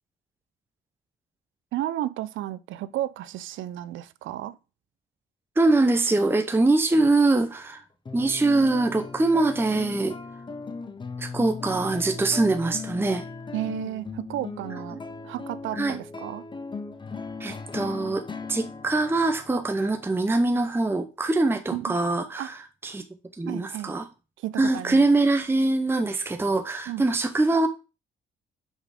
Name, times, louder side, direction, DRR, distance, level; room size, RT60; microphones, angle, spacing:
voice 1, 1.7-4.5 13.5-16.5 21.7-22.0 22.4-22.5 23.5-23.9 24.4-25.1 26.9-27.0, right 14 dB, 80° right, 0.5 m, -33 dB
voice 2, 5.6-7.8 8.1-10.2 11.2-13.3 15.7-16.0 17.4-23.0 23.4-24.1 24.6-27.7, right 2 dB, 10° right, 0.7 m, -23 dB
sound 1, 8.1-20.8, left 4 dB, 25° left, 0.8 m, -38 dB
5.5 x 4.9 x 4.9 m
cardioid pair, 90°, 20 cm